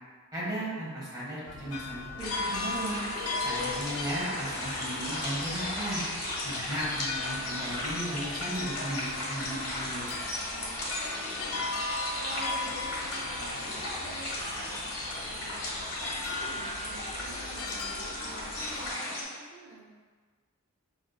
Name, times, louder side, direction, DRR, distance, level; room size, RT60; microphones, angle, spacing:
voice 1, 0.3-3.0 3.4-6.0 6.4-10.1, right 1 dB, 15° right, -8 dB, 0.9 m, -36 dB
sound 1, 1.5-18.9, left 3 dB, 70° left, 0.3 m, -39 dB
sound 2, 2.2-19.2, left 1 dB, 85° left, 1.0 m, -36 dB
sound 3, 3.6-17.4, equal, 60° right, 1.5 m, -56 dB
voice 2, 10.4-10.8 11.2-14.8 15.1-15.8 16.2-19.9, right 2 dB, 75° right, -6 dB, 0.9 m, -49 dB
4.5 x 2.5 x 2.2 m, 1.5 s
head